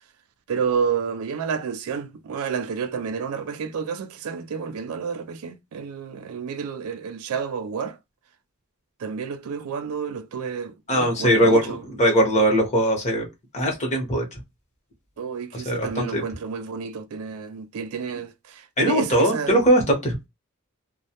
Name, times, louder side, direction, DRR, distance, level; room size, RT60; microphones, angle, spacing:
voice 1, 0.5-8.0 9.0-11.8 15.2-19.6, right 6 dB, 75° right, 0.4 m, -30 dB
voice 2, 10.9-13.3 13.5-14.4 15.5-16.2 18.8-20.1, right 1 dB, 35° left, 0.9 m, -20 dB
2.2 x 2.1 x 2.8 m
head